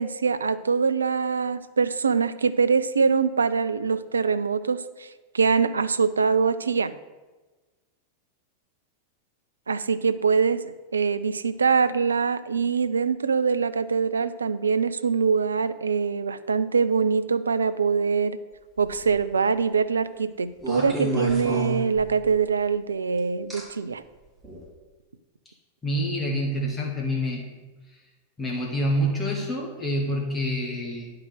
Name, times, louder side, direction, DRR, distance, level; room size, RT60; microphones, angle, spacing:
voice 1, 0.0-5.1 5.3-6.9 9.7-18.4 18.8-24.0, right 5 dB, 75° right, 13 dB, 0.4 m, -23 dB
sound 1, 18.8-19.2 20.6-22.4 23.5-23.6 24.4-24.6, right 1 dB, 10° right, 3.1 m, -30 dB
voice 2, 25.8-27.5 28.4-31.1, equal, 20° left, -1 dB, 1.7 m, -27 dB
9.9 x 4.8 x 6.3 m, 1.2 s
figure-of-eight pair, 90°, 0 cm